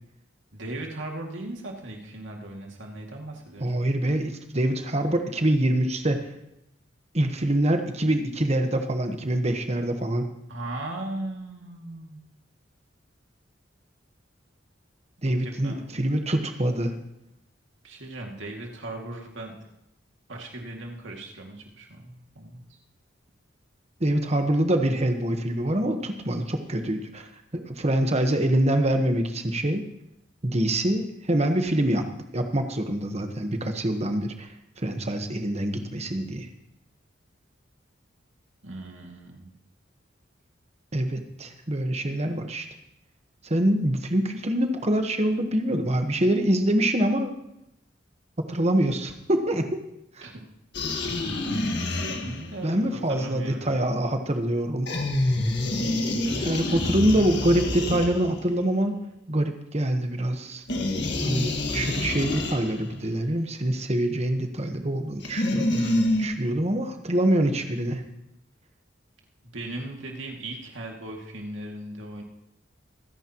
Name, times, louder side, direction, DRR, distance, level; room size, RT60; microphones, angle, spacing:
voice 1, 0.5-3.9 10.5-12.2 15.4-15.9 17.8-19.7 20.3-22.7 38.6-39.5 50.2-50.4 51.8-52.8 53.1-53.7 55.7-56.8 69.4-72.2, right 1 dB, 90° right, 1 dB, 2.4 m, -38 dB
voice 2, 3.6-6.3 7.1-10.3 15.2-16.9 24.0-29.8 30.4-32.1 32.3-34.5 34.8-36.5 40.9-42.7 43.4-47.3 48.5-49.7 50.2-50.3 52.6-54.9 56.4-58.9 59.3-60.6 61.2-68.0, right 1 dB, 35° right, 6 dB, 1.2 m, -25 dB
sound 1, 50.7-52.6 54.9-58.6 60.7-63.0 65.2-66.3, left 1 dB, 65° left, 1.8 m, -27 dB
24.5 x 10.0 x 3.0 m, 0.82 s
head